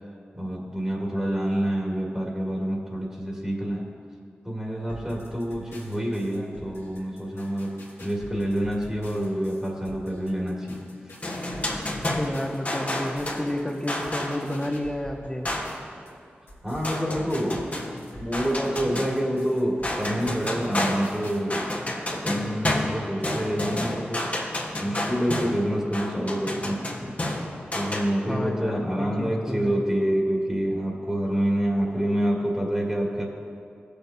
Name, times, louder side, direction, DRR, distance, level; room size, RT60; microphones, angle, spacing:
voice 1, 0.3-3.9 4.4-10.8 11.1-11.2 16.6-24.3 24.8-27.1 27.7-33.2, equal, 15° right, -3 dB, 2.2 m, -27 dB
sound 1, 4.9-16.1 16.5-21.4, left 1 dB, 85° left, 1.9 m, -45 dB
sound 2, 11.2-14.5 15.5-15.9 16.8-19.5 19.8-28.0, left 1 dB, 35° left, 1.5 m, -30 dB
voice 2, 12.1-15.5 28.3-29.8, left 1 dB, 15° left, 2 dB, 1.3 m, -31 dB
16.0 x 6.8 x 2.8 m, 2.4 s
cardioid pair, 40°, 4 cm